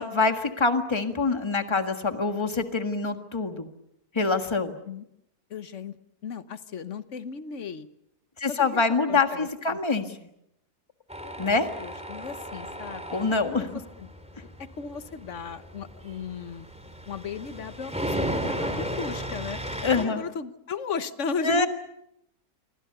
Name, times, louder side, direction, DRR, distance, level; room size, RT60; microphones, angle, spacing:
voice 1, 0.0-3.7 4.1-4.7 8.4-10.3 11.2-11.7 13.1-13.7 19.8-20.2 21.4-21.7, left 3 dB, 20° left, 7 dB, 1.6 m, -25 dB
voice 2, 5.5-6.0 6.2-7.9 8.5-9.8 11.8-14.1 14.4-16.7 17.1-19.6 20.0-21.7, left 5 dB, 55° left, 12 dB, 1.4 m, -36 dB
Tools, 11.1-20.1, equal, 5° right, 3.3 m, -35 dB
27.5 x 24.0 x 6.8 m, 0.79 s
omnidirectional pair, 1.6 m